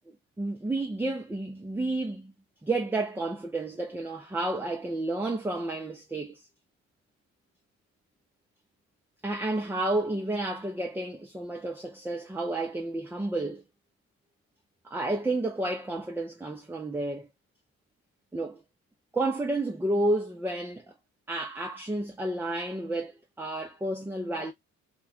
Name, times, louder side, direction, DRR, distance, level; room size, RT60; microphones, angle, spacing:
voice 1, 0.1-2.3 2.6-6.4 9.2-13.6 14.8-17.3 18.3-18.6 19.1-20.9 21.3-24.5, right 2 dB, 5° right, 0.4 m, -31 dB
2.2 x 2.1 x 3.5 m
cardioid pair, 90°, 30 cm